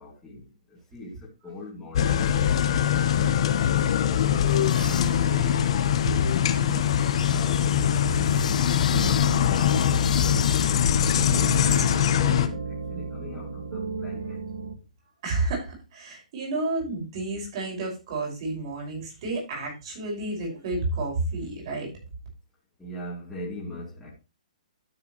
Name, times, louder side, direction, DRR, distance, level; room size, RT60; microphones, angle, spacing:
voice 1, 0.0-4.0 4.8-5.7 7.2-14.4 22.8-24.1, left 1 dB, 5° left, 2.2 m, -41 dB
sound 1, 1.9-12.5, left 9 dB, 45° left, 1.0 m, -23 dB
sound 2, 4.4-12.0, left 6 dB, 70° left, 0.4 m, -32 dB
voice 2, 4.8-5.6 6.5-6.9 15.2-21.9, right 2 dB, 40° right, 5.9 m, -31 dB
sound 3, 7.7-14.8, right 5 dB, 70° right, 1.8 m, -35 dB
12.0 x 7.0 x 3.1 m
hypercardioid pair, 160°, 4 cm